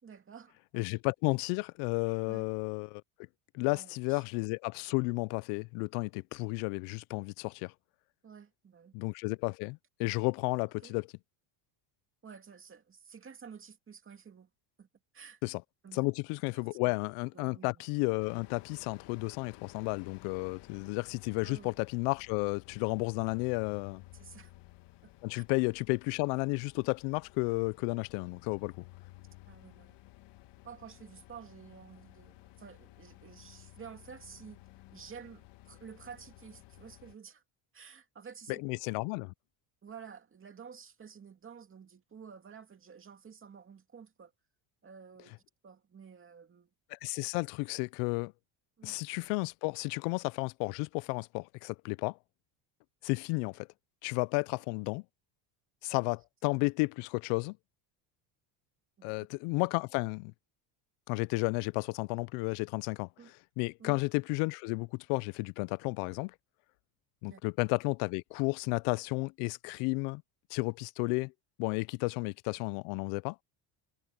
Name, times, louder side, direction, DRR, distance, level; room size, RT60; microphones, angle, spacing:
voice 1, 0.0-0.8 2.3-2.5 3.7-4.2 8.2-9.0 10.8-10.9 12.2-14.5 14.8-14.9 15.1-15.4 15.8-16.1 16.5-16.9 17.3-17.9 21.4-21.8 24.1-24.5 25.0-25.1 25.4-25.5 29.5-30.0 30.6-34.6 34.9-37.4 37.7-38.6 39.8-44.3 44.8-46.7 48.8-49.0 56.5-56.7 59.0-59.3 63.2-63.3 63.8-64.0 67.2-67.4, right 6 dB, 25° right, 2.6 m, -51 dB
voice 2, 0.7-3.0 3.5-7.7 8.9-11.1 15.4-15.6 15.9-24.0 25.2-28.8 38.5-39.3 46.9-48.3 48.8-52.2 53.0-53.7 54.0-55.0 55.8-57.6 59.0-60.3 61.1-63.1 63.6-66.3 67.2-70.2 70.5-71.3 71.6-73.4, left 29 dB, 85° left, 0.6 m, -32 dB
sound 1, 18.2-37.1, left 18 dB, 55° left, 1.3 m, -55 dB
cardioid pair, 140°, 50 cm